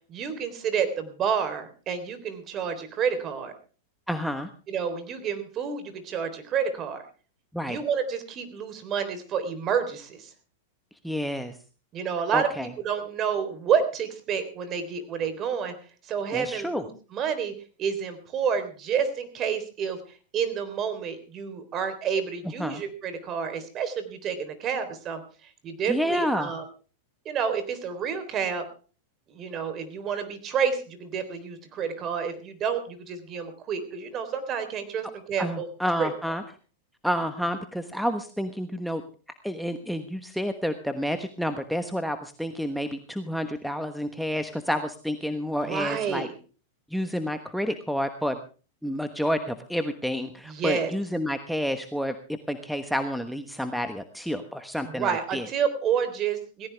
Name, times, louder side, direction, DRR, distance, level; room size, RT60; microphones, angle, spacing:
voice 1, 0.1-3.5 4.7-7.1 7.7-10.3 11.9-15.7 16.0-26.6 27.3-28.7 29.3-35.7 36.0-36.1 45.6-46.3 50.5-50.9 54.8-56.7, right 7 dB, 35° right, 10 dB, 3.7 m, -29 dB
voice 2, 4.1-4.5 7.5-7.8 11.0-11.6 12.3-12.7 16.3-16.8 22.6-22.8 25.9-26.5 35.4-36.4 37.0-39.0 39.4-46.3 46.9-48.4 48.8-55.4, equal, ahead, 7 dB, 1.2 m, -29 dB
18.5 x 16.5 x 3.4 m, 0.37 s
hypercardioid pair, 125°, 0 cm